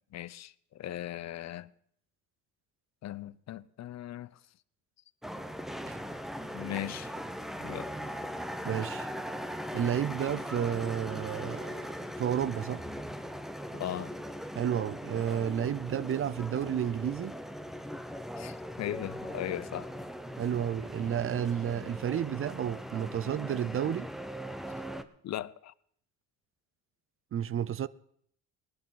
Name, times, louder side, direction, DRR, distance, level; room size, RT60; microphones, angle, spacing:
voice 1, 0.1-1.7 3.0-4.3 6.5-7.1 7.6-7.9 13.7-14.1 18.4-19.9 25.2-25.7, left 13 dB, 55° left, 0.6 m, -38 dB
sound 1, 5.2-25.0, equal, ahead, 0.8 m, -40 dB
voice 2, 8.6-9.1 9.7-11.8 12.2-12.8 14.5-17.3 20.4-24.1 27.3-27.9, right 9 dB, 40° right, 0.5 m, -31 dB
18.5 x 11.5 x 4.0 m
cardioid pair, 85°, 33 cm